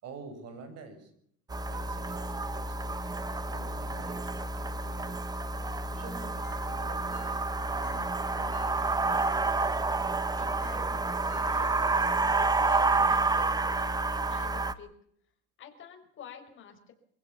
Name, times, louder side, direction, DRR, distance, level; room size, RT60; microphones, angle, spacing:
voice 1, 0.0-1.1 1.7-3.0 3.5-4.4 4.6-5.4 5.9-7.3 7.7-8.6, right 3 dB, 50° right, 8 dB, 6.7 m, -48 dB
sound 1, 1.5-14.7, right 3 dB, 10° right, 0.9 m, -29 dB
Ringtone, 6.4-6.7 7.0-9.5 9.7-9.8 10.3-10.4 10.6-10.9 11.1-12.3 12.5-13.7 13.9-14.0 14.5-14.6, left 9 dB, 70° left, 5.0 m, -55 dB
voice 2, 10.4-11.7 12.5-14.9 15.6-16.9, left 7 dB, 40° left, 3 dB, 5.4 m, -50 dB
24.5 x 16.0 x 7.1 m, 0.68 s
cardioid pair, 130°, 32 cm